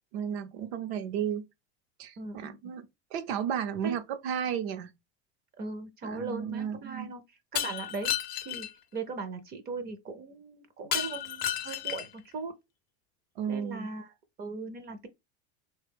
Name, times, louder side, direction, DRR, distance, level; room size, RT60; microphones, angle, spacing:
voice 1, 0.1-1.4 2.0-4.9 6.0-7.1 13.4-13.9, right 8 dB, 70° right, 0.7 m, -33 dB
voice 2, 2.2-2.7 3.8-4.0 5.6-7.2 7.5-8.1 8.4-8.7 8.9-12.5 13.5-14.1 14.4-15.1, right 3 dB, 30° right, 0.5 m, -39 dB
Shatter, 7.6-8.7 10.9-12.2, left 10 dB, 30° left, 0.5 m, -32 dB
3.2 x 2.2 x 3.3 m
supercardioid pair, 125°, 33 cm